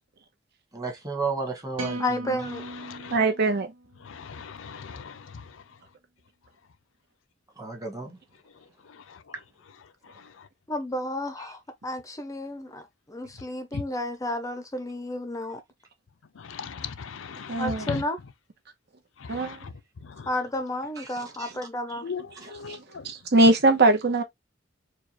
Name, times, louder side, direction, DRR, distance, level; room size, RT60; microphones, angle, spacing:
voice 1, 0.7-2.4 7.6-8.2 19.4-19.5 21.0-21.5 22.4-22.5, right 4 dB, 20° right, 1.4 m, -33 dB
sound 1, 1.8-4.1, right 1 dB, 80° right, 1.0 m, -37 dB
voice 2, 2.0-2.6 10.7-12.8 13.1-15.6 17.6-18.2 20.3-22.0, left 1 dB, 15° left, 0.6 m, -32 dB
voice 3, 2.6-3.2 4.0-5.6 8.9-9.2 10.1-10.5 13.7-13.8 16.4-18.0 19.2-19.7 20.0-20.3 22.0-23.1, left 5 dB, 80° left, 0.5 m, -38 dB
voice 4, 3.1-3.7 17.5-17.9 19.3-19.5 22.7-22.8 23.0-24.2, right 2 dB, 60° right, 1.0 m, -21 dB
4.6 x 2.3 x 3.0 m
head